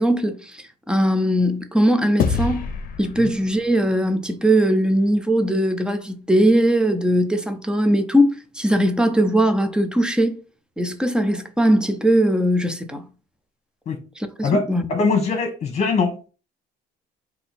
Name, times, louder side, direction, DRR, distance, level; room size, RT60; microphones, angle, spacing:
voice 1, 0.0-2.7 3.0-10.3 10.8-13.0 14.2-14.8, right 1 dB, 5° right, 0.6 m, -20 dB
sound 1, 2.2-4.8, left 5 dB, 55° left, 0.7 m, -27 dB
voice 2, 14.4-16.3, left 4 dB, 40° left, 1.2 m, -22 dB
3.8 x 2.8 x 4.0 m
cardioid pair, 110°, 17 cm